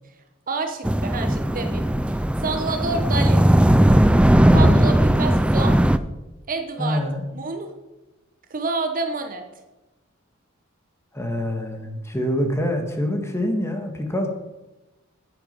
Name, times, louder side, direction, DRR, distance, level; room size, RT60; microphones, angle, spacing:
voice 1, 0.5-1.8 2.4-3.4 4.5-5.8 6.5-7.0 7.3-7.7 8.5-9.4, right 3 dB, 40° right, 6 dB, 1.0 m, -28 dB
sound 1, 0.8-6.0, right 1 dB, 5° right, 0.4 m, -17 dB
voice 2, 4.5-4.8 6.8-7.3 11.1-14.3, left 1 dB, 15° left, 4 dB, 1.7 m, -25 dB
9.9 x 9.7 x 5.3 m, 1.0 s
head